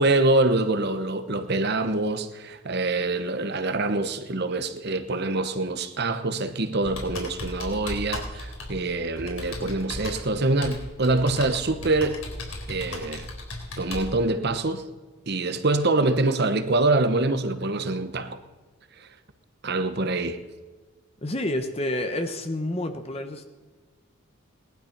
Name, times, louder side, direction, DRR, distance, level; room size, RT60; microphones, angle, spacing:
voice 1, 0.0-12.2 12.7-13.3 13.8-14.8 15.3-18.4 19.0-19.1 19.6-20.4, right 2 dB, 45° right, 1.0 m, -25 dB
Computer keyboard, 6.8-14.1, left 2 dB, 70° left, 3.7 m, -36 dB
voice 2, 21.2-23.4, left 1 dB, 25° left, 1.0 m, -29 dB
19.0 x 12.0 x 6.0 m
head